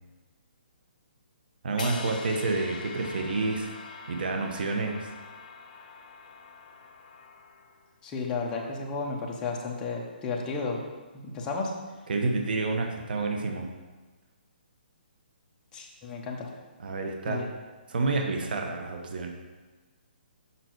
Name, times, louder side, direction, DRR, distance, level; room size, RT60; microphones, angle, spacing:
voice 1, 1.6-3.7 4.1-5.1 12.1-13.7 16.8-17.4 17.9-19.3, right 3 dB, 60° right, 2 dB, 1.0 m, -29 dB
sound 1, 1.8-7.9, left 5 dB, 50° left, 0.8 m, -43 dB
voice 2, 8.0-10.8 11.1-11.7 15.7-16.5 17.3-17.5, left 4 dB, 15° left, -1 dB, 0.9 m, -33 dB
6.9 x 5.9 x 4.6 m, 1.3 s
hypercardioid pair, 165°, 6 cm